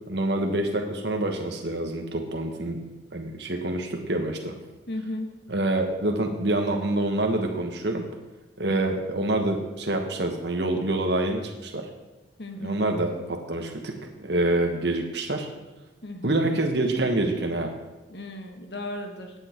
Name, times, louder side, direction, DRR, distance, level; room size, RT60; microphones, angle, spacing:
voice 1, 0.1-2.8 3.1-4.5 5.5-8.0 8.6-11.9 12.6-13.9 14.2-15.5 16.2-17.7, right 2 dB, 65° right, 3 dB, 1.4 m, -26 dB
voice 2, 4.9-5.3 8.7-8.8 12.4-12.8 16.0-16.4 18.1-19.3, left 1 dB, 60° left, 4 dB, 1.7 m, -35 dB
16.5 x 9.0 x 4.5 m, 1.1 s
head